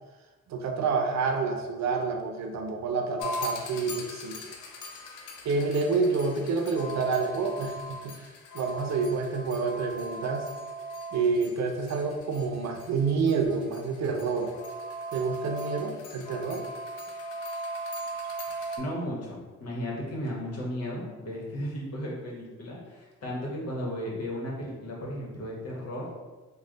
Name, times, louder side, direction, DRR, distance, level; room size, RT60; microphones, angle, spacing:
voice 1, 0.5-4.4 5.4-8.1 8.5-10.5 11.1-14.5 15.1-16.6, right 4 dB, 65° right, 3 dB, 0.6 m, -28 dB
sound 1, 3.2-18.8, right 1 dB, 85° left, 0.6 m, -39 dB
voice 2, 18.8-26.1, equal, 55° left, -3 dB, 1.2 m, -35 dB
3.2 x 2.3 x 3.8 m, 1.2 s
cardioid pair, 90°, 30 cm